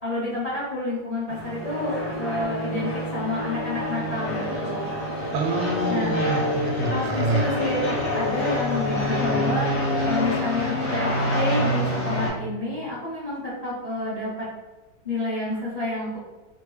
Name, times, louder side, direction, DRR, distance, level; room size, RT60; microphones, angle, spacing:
voice 1, 0.0-4.9 5.9-6.2 6.9-9.7 10.1-14.5 15.0-16.2, left 2 dB, 30° left, -10 dB, 0.6 m, -29 dB
sound 1, 1.3-12.3, left 1 dB, 50° left, 1.2 m, -26 dB
voice 2, 5.3-7.5, right 2 dB, 90° right, 3 dB, 1.4 m, -26 dB
3.2 x 2.2 x 3.1 m, 1.2 s
omnidirectional pair, 2.2 m